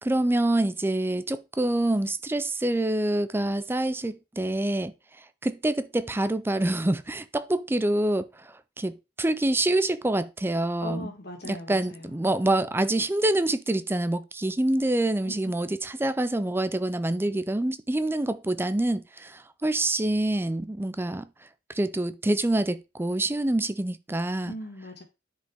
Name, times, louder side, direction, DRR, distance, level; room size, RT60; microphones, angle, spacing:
voice 1, 0.0-4.9 5.4-11.1 11.4-21.3 21.7-24.5, right 1 dB, 10° right, 0.4 m, -26 dB
voice 2, 10.8-12.2 15.2-15.3 24.5-25.0, equal, 55° left, 2.0 m, -39 dB
10.0 x 5.0 x 3.5 m
head